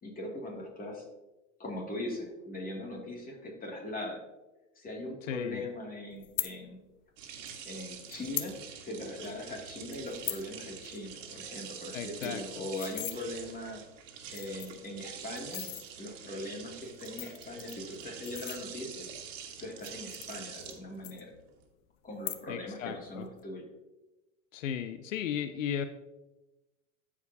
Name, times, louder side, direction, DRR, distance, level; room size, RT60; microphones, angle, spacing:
voice 1, 0.0-1.1 1.6-4.2 4.8-6.8 7.6-8.6 8.8-13.8 14.3-15.7 16.0-19.0 19.6-21.3 22.0-23.7, left 1 dB, 20° left, -1 dB, 2.4 m, -40 dB
voice 2, 5.2-5.6 11.9-12.4 22.5-23.3 24.5-25.9, left 9 dB, 80° left, 10 dB, 0.6 m, -35 dB
sound 1, 6.2-6.5 7.5-7.6 8.1-8.5 8.9-9.0 9.2-9.5 9.9-10.5 10.8-11.0 11.3-11.4 11.7-11.8 12.0-13.2 13.9-14.0 14.3-14.9 15.4-15.9 16.8-19.0 19.7-20.8 21.0-21.7 22.1-22.7 23.0-23.4, left 15 dB, 40° left, 0.6 m, -39 dB
sound 2, 7.2-21.6, right 7 dB, 70° right, 1.5 m, -46 dB
13.5 x 4.9 x 2.7 m, 1.0 s
hypercardioid pair, 95°, 38 cm